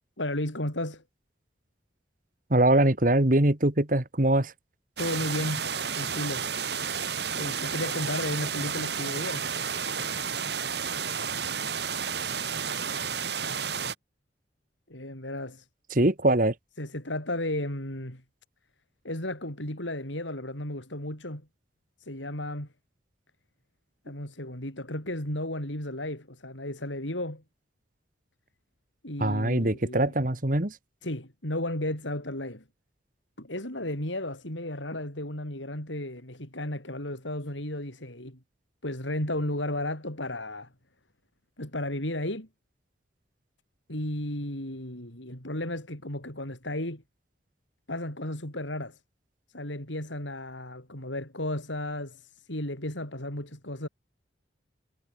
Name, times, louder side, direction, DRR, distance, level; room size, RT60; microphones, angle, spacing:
voice 1, 0.2-1.0 5.0-5.7 5.9-6.5 7.4-9.5 14.9-15.7 16.8-18.2 19.0-21.4 22.0-22.7 24.0-27.4 29.0-30.1 31.0-32.6 33.4-38.4 38.8-40.7 41.6-42.5 43.9-47.0 47.9-49.0 49.5-53.9, left 1 dB, 85° left, 7.6 m, -34 dB
voice 2, 2.5-4.5 15.9-16.5 29.2-30.8, right 1 dB, 45° right, 1.8 m, -23 dB
sound 1, 5.0-13.9, right 6 dB, 65° right, 3.3 m, -31 dB
head